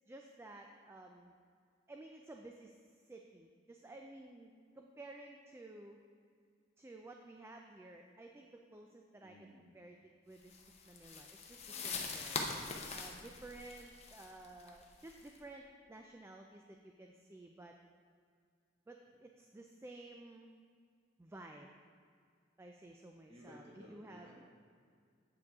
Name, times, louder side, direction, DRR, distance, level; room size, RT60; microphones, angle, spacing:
voice 1, 0.1-1.3 1.9-2.8 3.1-6.0 6.8-9.5 9.7-12.4 12.9-17.7 18.9-20.6 21.2-21.7 22.6-24.3, right 2 dB, 15° right, 2 dB, 0.3 m, -54 dB
voice 2, 9.2-9.7 11.6-12.2 23.3-24.4, equal, 30° right, -5 dB, 1.7 m, -57 dB
sound 1, 10.5-15.4, left 4 dB, 35° left, 0.7 m, -43 dB
8.1 x 7.1 x 3.5 m, 2.2 s
head